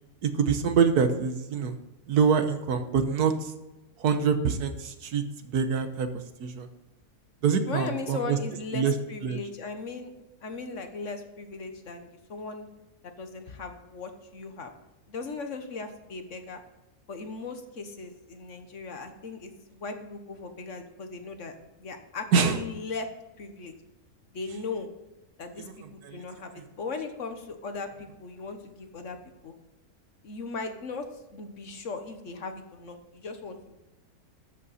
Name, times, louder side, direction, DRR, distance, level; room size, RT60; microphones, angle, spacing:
voice 1, 0.2-1.8 2.1-3.5 4.0-6.1 6.4-6.7 7.4-8.4 8.7-8.9 9.2-9.4 22.3-22.6 25.6-25.7 26.0-26.2, right 6 dB, 85° right, 8 dB, 1.5 m, -25 dB
voice 2, 7.7-10.1 10.4-12.7 13.2-14.7 15.1-16.6 17.1-23.1 23.4-23.7 24.3-24.9 25.4-29.2 29.4-29.5 30.2-33.8, left 4 dB, 55° left, 7 dB, 1.4 m, -38 dB
12.5 x 8.3 x 4.2 m, 1.0 s
omnidirectional pair, 1.6 m